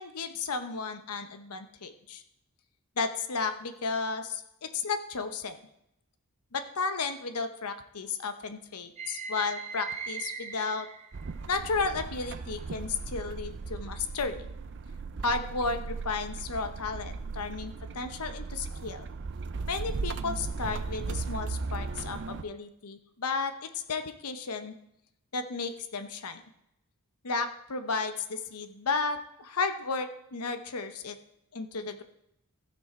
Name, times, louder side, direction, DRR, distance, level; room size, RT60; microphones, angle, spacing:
voice 1, 0.0-2.2 3.0-5.6 6.5-10.9 11.5-14.5 15.2-19.1 19.7-24.7 25.3-26.4 27.2-31.2 31.5-32.0, left 4 dB, 90° left, 9 dB, 1.0 m, -33 dB
sound 1, 9.0-11.4 11.9-12.8, right 5 dB, 30° right, 1.2 m, -40 dB
sound 2, 11.1-22.4, right 4 dB, 55° right, 0.5 m, -37 dB
15.0 x 6.3 x 4.4 m, 0.81 s
head